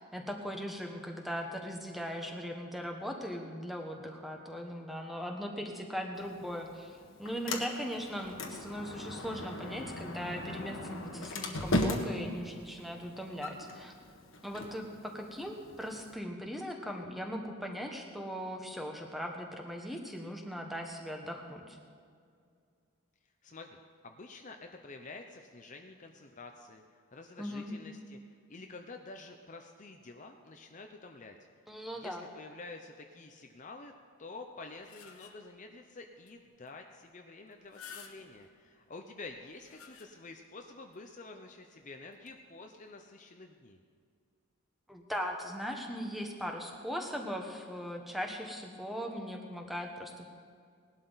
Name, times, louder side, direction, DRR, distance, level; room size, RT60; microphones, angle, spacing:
voice 1, 0.0-13.9 14.4-21.8 27.4-27.7 31.7-32.2 44.9-50.3, equal, ahead, 2 dB, 1.2 m, -39 dB
Sliding door, 6.2-16.1, left 1 dB, 60° left, 1.4 m, -38 dB
voice 2, 23.4-26.8 27.1-28.2 28.5-31.4 31.9-33.9 34.2-43.8, left 3 dB, 35° left, 4 dB, 0.6 m, -49 dB
sound 1, 34.5-35.6 36.3-36.4 36.7-36.8 37.5-38.6 39.3-40.5 40.9-41.0 42.1-42.3, left 7 dB, 80° left, 1.2 m, -53 dB
19.0 x 11.5 x 4.0 m, 2.2 s
head